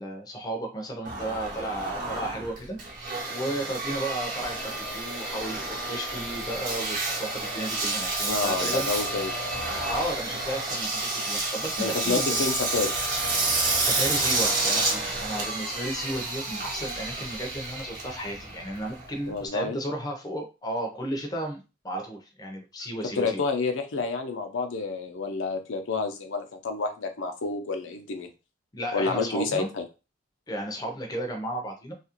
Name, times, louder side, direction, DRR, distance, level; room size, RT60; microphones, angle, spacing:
voice 1, 0.0-2.8 3.3-8.9 9.9-12.4 13.8-23.4 28.7-29.7 30.5-31.9, right 1 dB, 20° left, 2 dB, 0.5 m, -34 dB
Engine, 1.0-19.5, right 2 dB, 45° right, 0.9 m, -30 dB
voice 2, 8.3-9.3 11.8-12.9 19.3-19.8 23.1-28.3 28.9-29.8, left 4 dB, 80° left, 5 dB, 0.5 m, -29 dB
2.8 x 2.4 x 2.8 m, 0.29 s
head